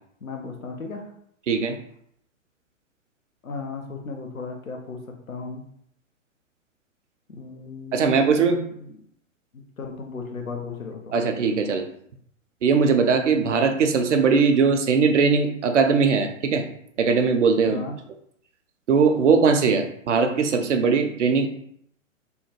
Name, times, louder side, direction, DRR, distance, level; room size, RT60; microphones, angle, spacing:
voice 1, 0.2-1.0 3.4-5.0 5.3-5.6 7.3-8.2 9.5-11.1 17.6-18.0, left 4 dB, 90° left, 2 dB, 0.7 m, -35 dB
voice 2, 1.5-1.8 7.9-8.6 11.1-11.8 12.6-16.6 17.0-17.8 18.9-21.5, right 5 dB, 65° right, 6 dB, 0.6 m, -20 dB
3.5 x 2.2 x 2.9 m, 0.68 s
figure-of-eight pair, 115°, 40 cm